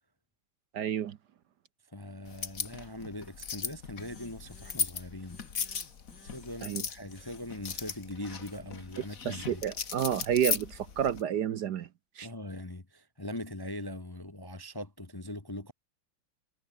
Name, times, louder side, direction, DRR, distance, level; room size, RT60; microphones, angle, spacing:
voice 1, 0.7-1.2 6.6-6.8 9.2-11.9 12.2-12.3, right 9 dB, 60° right, 1.3 m, -30 dB
voice 2, 1.9-5.4 6.2-9.6 12.2-15.7, left 1 dB, 15° left, 0.9 m, -41 dB
sound 1, 2.3-11.2, left 6 dB, 45° left, 1.9 m, -37 dB
sound 2, 4.0-5.0 5.3-6.6 7.1-8.6, left 4 dB, 65° left, 4.6 m, -55 dB
omnidirectional pair, 2.2 m